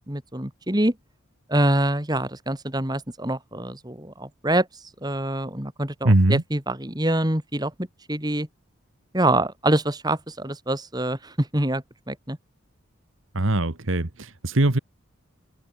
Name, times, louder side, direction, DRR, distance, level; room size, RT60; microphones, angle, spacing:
voice 1, 0.1-0.9 1.5-4.7 5.0-7.7 8.1-8.5 9.1-12.4, right 1 dB, 20° right, 2.1 m, -25 dB
voice 2, 6.0-6.4 13.3-14.8, right 1 dB, 70° right, 1.6 m, -21 dB
head